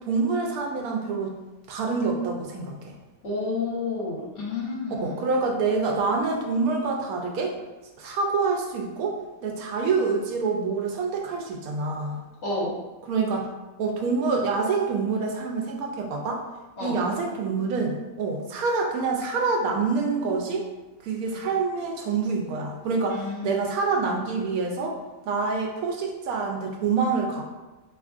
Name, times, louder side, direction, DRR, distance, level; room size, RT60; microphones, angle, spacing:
voice 1, 0.1-1.4 1.7-2.9 5.0-7.5 8.0-9.2 9.4-12.2 13.1-13.5 13.8-16.4 16.8-20.7 21.0-25.0 25.2-27.4, right 4 dB, 90° right, 1 dB, 1.1 m, -26 dB
voice 2, 3.2-5.2 12.4-12.8 16.8-17.0 21.3-21.4 23.1-23.6, left 3 dB, 55° left, -7 dB, 1.2 m, -30 dB
3.5 x 2.9 x 2.4 m, 1.1 s
omnidirectional pair, 1.5 m